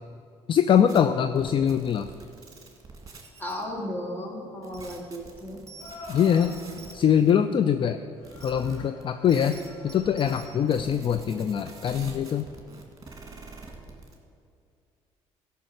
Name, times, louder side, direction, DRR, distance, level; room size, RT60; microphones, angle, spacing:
voice 1, 0.5-2.1 6.1-6.6 6.9-8.0 8.4-12.5, left 8 dB, 45° left, 10 dB, 0.4 m, -23 dB
sound 1, 0.9-1.0 1.4-3.6 4.6-7.3 8.2-14.1, right 3 dB, 30° right, 2.0 m, -45 dB
sound 2, 2.6-2.7 5.7-7.0 8.2-10.8, left 2 dB, 85° left, 1.4 m, -47 dB
voice 2, 3.4-5.6, equal, 15° left, 0 dB, 2.3 m, -35 dB
13.0 x 5.7 x 6.4 m, 2.4 s
cardioid pair, 90°, 12 cm